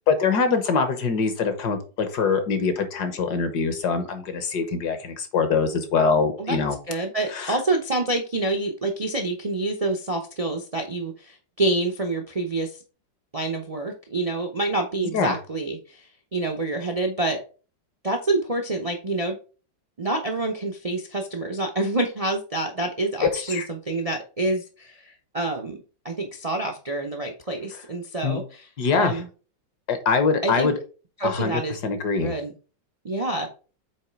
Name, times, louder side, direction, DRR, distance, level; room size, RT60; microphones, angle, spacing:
voice 1, 0.1-6.8 7.3-7.6 15.1-15.3 23.3-23.7 28.2-28.4 28.8-29.2 29.9-30.7 31.2-32.3, left 5 dB, 60° left, 8 dB, 1.5 m, -23 dB
voice 2, 6.9-12.8 13.3-17.4 18.0-19.4 20.0-25.8 26.0-29.3 30.4-30.7 31.2-31.7 32.2-32.5 33.0-33.5, right 2 dB, 45° right, 3 dB, 0.4 m, -27 dB
8.1 x 3.2 x 4.5 m, 0.36 s
omnidirectional pair, 2.0 m